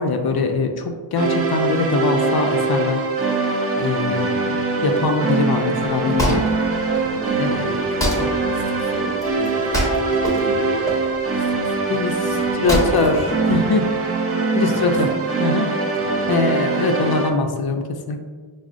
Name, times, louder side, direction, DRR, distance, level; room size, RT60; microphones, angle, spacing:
voice 1, 0.0-3.0 3.8-4.3 4.8-6.5 7.4-7.8 11.9-12.3 12.6-13.9 14.5-15.1 15.4-15.7 16.3-18.3, left 3 dB, 50° left, 4 dB, 0.5 m, -22 dB
sound 1, 1.2-17.3, right 3 dB, 30° right, 0.4 m, -22 dB
voice 2, 4.1-4.5 7.0-11.0 11.3-11.7 12.2-12.8 14.7-14.9 15.9-16.3, right 2 dB, 80° right, 2 dB, 0.7 m, -36 dB
Wood, 5.8-14.1, equal, 5° left, 1.0 m, -27 dB
6.0 x 2.1 x 2.4 m, 1.5 s
wide cardioid pair, 95°, 50 cm